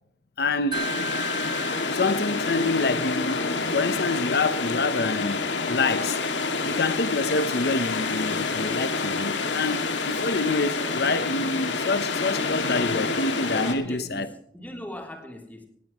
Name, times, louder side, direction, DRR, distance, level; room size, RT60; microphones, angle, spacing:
voice 1, 0.4-0.9 1.9-6.2 6.6-14.3, left 3 dB, 60° left, 0.9 m, -27 dB
sound 1, 0.7-13.8, left 3 dB, 90° left, 2.3 m, -28 dB
Wind chime, 0.7-3.8, right 3 dB, 25° right, 1.7 m, -37 dB
voice 2, 13.5-15.7, equal, 10° left, 3.3 m, -39 dB
19.0 x 17.0 x 3.1 m
head